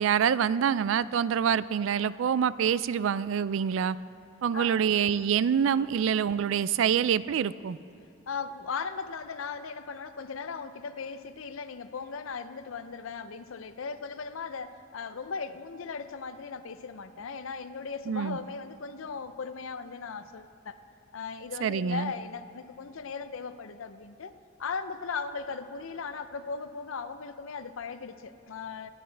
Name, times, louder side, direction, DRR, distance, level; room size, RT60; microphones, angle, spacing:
voice 1, 0.0-4.0 4.4-7.8 18.1-18.4 21.6-22.1, right 8 dB, 70° right, 18 dB, 0.3 m, -26 dB
voice 2, 4.5-4.8 8.3-20.8 21.1-24.3 24.6-28.9, left 5 dB, 80° left, 11 dB, 0.6 m, -38 dB
24.5 x 9.9 x 3.4 m, 2.5 s
head